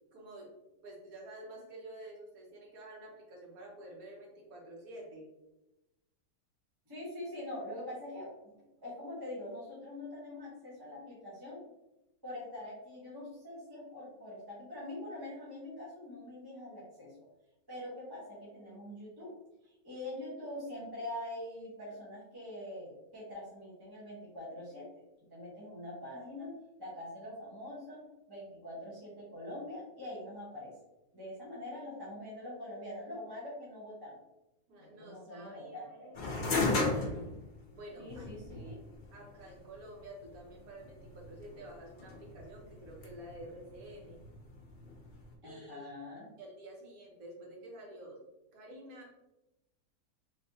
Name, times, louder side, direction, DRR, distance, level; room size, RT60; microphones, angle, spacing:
voice 1, 0.1-0.5 0.8-5.3 34.7-36.1 37.7-38.3 39.1-44.2 45.4-45.9 46.4-48.2 48.5-49.1, right 1 dB, 70° right, -2 dB, 1.5 m, -49 dB
voice 2, 6.9-8.5 8.8-11.6 12.2-17.1 17.7-19.3 19.6-25.0 25.3-26.5 26.8-30.7 31.1-34.2 34.8-36.4 38.0-38.7 45.4-46.3, left 1 dB, 20° right, -6 dB, 0.8 m, -44 dB
sound 1, 36.1-45.3, left 3 dB, 50° left, 0.6 m, -37 dB
3.3 x 3.3 x 2.7 m, 0.94 s
omnidirectional pair, 1.6 m